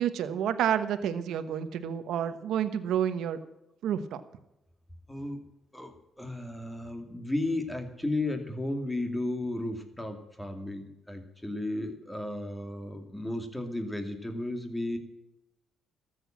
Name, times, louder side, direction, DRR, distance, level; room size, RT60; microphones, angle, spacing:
voice 1, 0.0-3.4 3.8-4.2, right 9 dB, 80° right, 11 dB, 1.1 m, -29 dB
voice 2, 5.1-5.4 5.7-15.0, left 1 dB, 10° left, 5 dB, 2.6 m, -34 dB
14.0 x 7.8 x 7.5 m, 0.89 s
cardioid pair, 90°, 0 cm